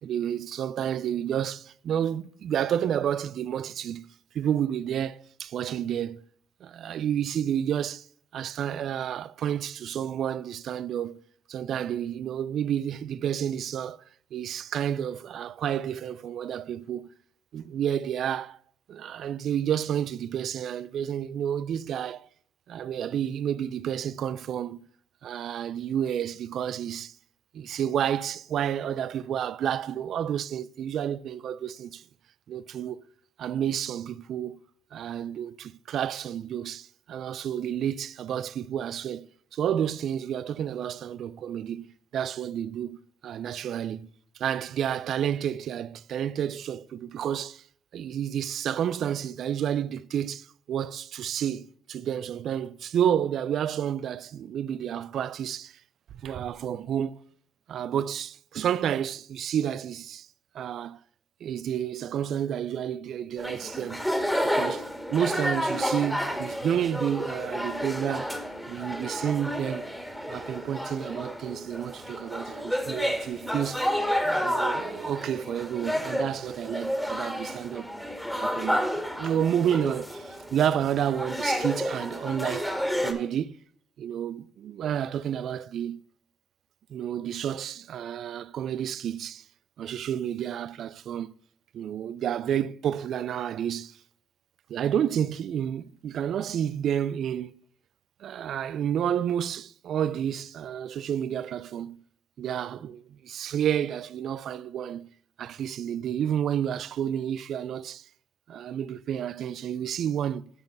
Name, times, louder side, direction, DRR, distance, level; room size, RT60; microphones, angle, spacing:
voice 1, 0.0-6.2 6.6-8.1 8.3-11.2 11.5-14.0 14.3-17.1 17.5-18.6 18.9-22.3 22.7-24.9 25.2-27.2 27.5-32.0 32.5-33.0 33.4-34.6 34.9-41.9 42.1-43.0 43.2-44.1 44.4-47.6 47.9-55.8 56.2-57.2 57.7-60.3 60.5-61.0 61.4-64.1 64.4-68.3 68.7-69.9 70.3-73.9 74.2-77.9 78.4-83.6 84.0-86.0 86.9-89.4 89.8-91.3 91.7-94.0 94.7-97.6 98.2-102.0 102.4-105.1 105.4-108.1 108.5-110.5, right 9 dB, 70° right, 0.4 m, -30 dB
sound 1, 63.4-83.1, equal, ahead, 1.9 m, -31 dB
10.5 x 5.4 x 5.3 m
cardioid pair, 90°, 0 cm